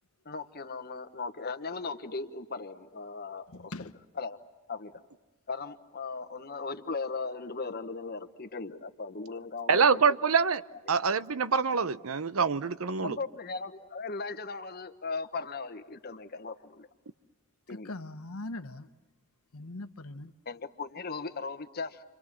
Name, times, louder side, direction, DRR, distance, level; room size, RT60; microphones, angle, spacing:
voice 1, 0.2-3.9 4.1-4.4 4.7-5.0 5.5-9.9 10.7-10.8 13.0-16.9 17.7-17.9 20.4-22.0, left 4 dB, 45° left, 1.3 m, -38 dB
voice 2, 3.5-3.9 17.8-18.9 19.5-20.3, left 2 dB, 85° left, 1.2 m, -40 dB
voice 3, 9.7-10.6 10.9-13.2, right 5 dB, 80° right, 0.8 m, -25 dB
30.0 x 25.5 x 7.5 m
head